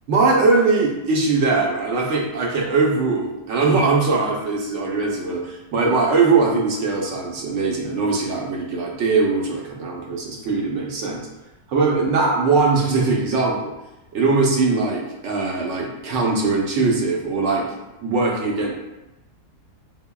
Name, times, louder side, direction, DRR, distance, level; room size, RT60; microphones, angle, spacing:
voice 1, 0.1-11.2 11.7-13.7 14.1-17.7 18.0-18.7, right 3 dB, 60° right, -1 dB, 0.8 m, -21 dB
5.7 x 2.1 x 2.2 m, 0.98 s
omnidirectional pair, 1.7 m